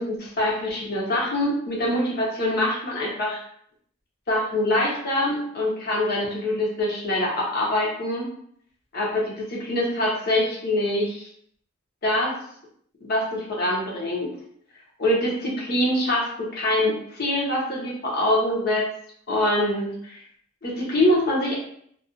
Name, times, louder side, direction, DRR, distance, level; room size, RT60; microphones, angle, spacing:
voice 1, 0.0-3.4 4.3-8.3 8.9-11.3 12.0-12.3 13.0-14.3 15.0-18.9 19.3-20.2 20.6-21.5, left 1 dB, 50° left, -4 dB, 0.8 m, -24 dB
2.5 x 2.4 x 2.4 m, 0.66 s
head